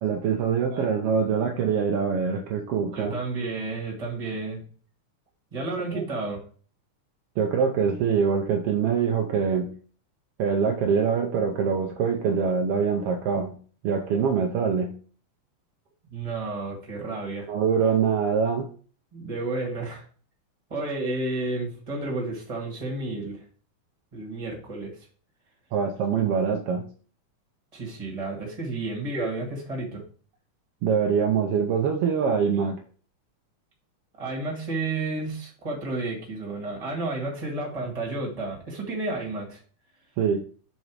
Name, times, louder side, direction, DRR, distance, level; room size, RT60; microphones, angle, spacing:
voice 1, 0.0-3.2 5.9-6.0 7.4-9.7 10.4-13.6 13.8-14.9 17.5-18.7 25.7-26.8 30.8-32.8 40.2-40.4, right 6 dB, 85° right, 3 dB, 1.3 m, -24 dB
voice 2, 2.9-4.6 5.5-6.4 16.1-17.5 19.1-20.0 20.7-23.4 24.1-25.0 27.7-30.0 34.2-39.6, right 2 dB, 15° right, -2 dB, 1.4 m, -31 dB
6.1 x 4.0 x 4.7 m, 0.42 s
omnidirectional pair, 3.5 m